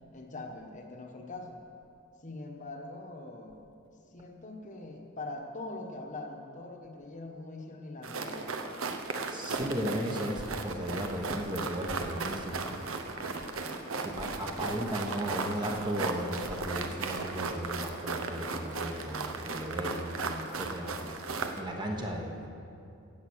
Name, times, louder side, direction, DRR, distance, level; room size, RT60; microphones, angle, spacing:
voice 1, 0.1-1.6 2.2-3.6 4.1-8.4, left 2 dB, 35° left, 2 dB, 1.2 m, -42 dB
sound 1, 8.0-21.6, right 4 dB, 65° right, 0.9 m, -36 dB
voice 2, 9.3-13.0 14.0-22.5, equal, 20° right, 1 dB, 1.1 m, -36 dB
15.5 x 8.3 x 6.3 m, 2.6 s
head